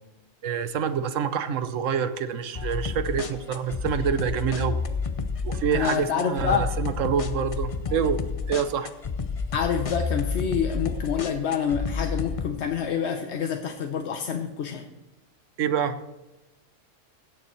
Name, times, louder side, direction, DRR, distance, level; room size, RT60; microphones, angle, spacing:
voice 1, 0.4-4.8 5.4-8.2 8.5-8.9 15.6-16.0, right 7 dB, 80° right, 11 dB, 1.1 m, -27 dB
sound 1, 2.5-12.5, left 5 dB, 40° left, 0.5 m, -30 dB
voice 2, 5.7-6.7 9.5-14.9, left 7 dB, 65° left, 5 dB, 1.0 m, -27 dB
16.5 x 6.9 x 4.3 m, 1.0 s
omnidirectional pair, 1.3 m